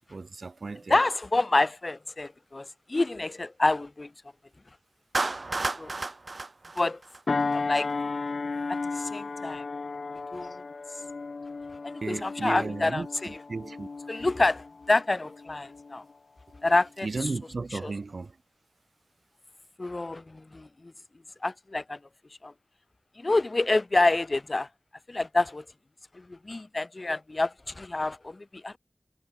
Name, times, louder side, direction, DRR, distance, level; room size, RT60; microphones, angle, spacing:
voice 1, 0.1-1.0 12.0-14.3 17.0-18.4, right 3 dB, 80° right, 2.9 m, -35 dB
voice 2, 0.9-4.1 5.8-5.9 6.7-7.0 7.5-7.9 8.7-9.6 10.3-10.6 11.8-13.4 14.1-16.0 16.6-17.3 17.7-17.9 19.8-20.9 21.4-22.0 22.4-22.5 23.2-24.7 25.1-25.6 26.1-28.8, left 2 dB, 50° left, 3.1 m, -28 dB
Clapping, 5.1-7.5, right 3 dB, 65° right, 4.3 m, -31 dB
sound 1, 7.3-16.1 16.6-16.8, left 4 dB, 90° left, 1.2 m, -34 dB
wide cardioid pair, 50°, 0 cm